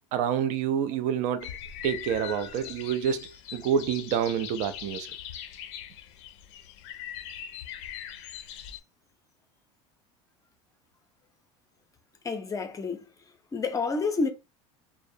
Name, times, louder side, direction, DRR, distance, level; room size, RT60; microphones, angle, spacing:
voice 1, 0.1-1.5 1.8-5.1, right 8 dB, 55° right, 0.4 m, -28 dB
sound 1, 1.4-8.8, left 10 dB, 75° left, 0.4 m, -41 dB
voice 2, 12.2-13.1 13.5-14.3, left 4 dB, 20° left, 0.5 m, -29 dB
2.4 x 2.0 x 2.6 m
supercardioid pair, 95°, 15 cm